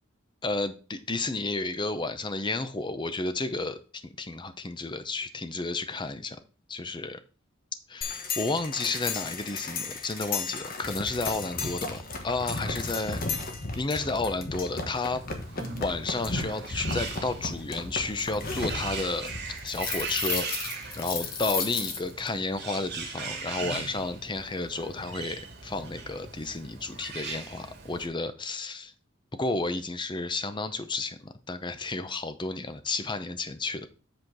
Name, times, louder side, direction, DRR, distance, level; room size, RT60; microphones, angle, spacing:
voice 1, 0.4-6.4 6.7-7.2 7.9-12.0 12.2-13.2 13.8-15.2 15.8-19.3 19.6-20.5 21.0-28.9 29.3-33.9, left 3 dB, 25° left, 0.6 m, -32 dB
sound 1, 8.0-22.3, left 4 dB, 45° left, 1.2 m, -34 dB
Bird, 15.1-28.1, right 4 dB, 55° right, 2.1 m, -39 dB
7.8 x 4.4 x 4.6 m
head